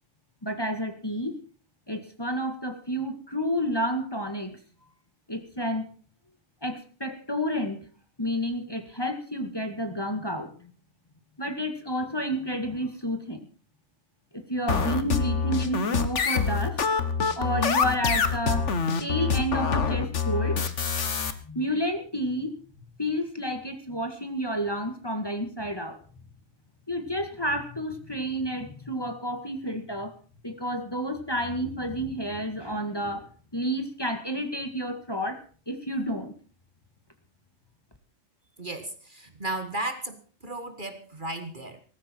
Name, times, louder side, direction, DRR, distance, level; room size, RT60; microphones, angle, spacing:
voice 1, 0.4-1.4 1.9-4.6 5.3-5.9 6.6-7.8 8.2-10.7 11.4-13.5 14.3-16.8 17.4-18.7 19.0-20.7 21.4-22.6 23.0-26.0 26.9-30.1 30.4-33.3 33.5-36.3, equal, 20° left, 6 dB, 2.0 m, -30 dB
sound 1, 14.7-21.3, left 5 dB, 60° left, 1.7 m, -25 dB
voice 2, 38.6-41.8, right 2 dB, 40° right, 8 dB, 1.8 m, -35 dB
18.0 x 15.0 x 4.6 m, 0.38 s
omnidirectional pair, 1.4 m